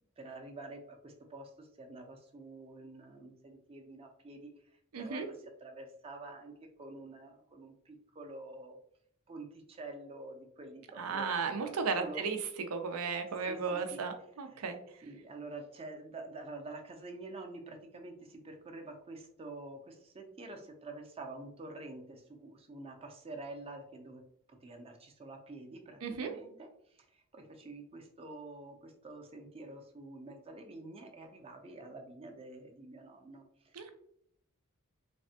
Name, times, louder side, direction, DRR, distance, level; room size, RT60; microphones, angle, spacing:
voice 1, 0.2-4.5 5.0-5.2 5.6-6.5 6.8-8.8 9.3-11.3 12.0-12.3 13.5-14.0 14.5-14.7 15.0-24.2 24.5-33.8, right 2 dB, 25° right, 4 dB, 0.4 m, -47 dB
voice 2, 4.9-5.3 11.0-12.4 12.7-15.0 26.0-26.3 33.7-33.9, right 5 dB, 85° right, 7 dB, 0.5 m, -35 dB
3.3 x 2.1 x 2.7 m, 0.70 s
head